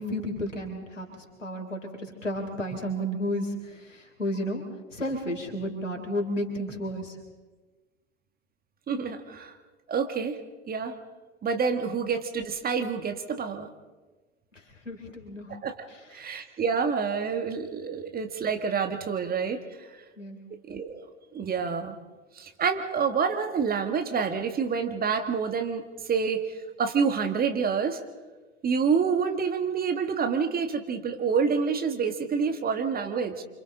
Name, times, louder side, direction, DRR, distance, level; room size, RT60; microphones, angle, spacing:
voice 1, 0.0-4.6 4.9-7.2 14.5-15.6 15.9-16.3 20.2-20.5, equal, 85° left, 3 dB, 3.8 m, -33 dB
voice 2, 8.9-9.5 9.9-10.4 10.7-11.0 11.4-13.7 15.6-15.8 16.1-19.6 20.7-22.0 22.3-25.8 26.1-26.5 26.8-28.0 28.6-33.4, right 6 dB, 25° right, 6 dB, 1.8 m, -27 dB
28.5 x 25.5 x 4.0 m, 1.3 s
figure-of-eight pair, 80°, 37 cm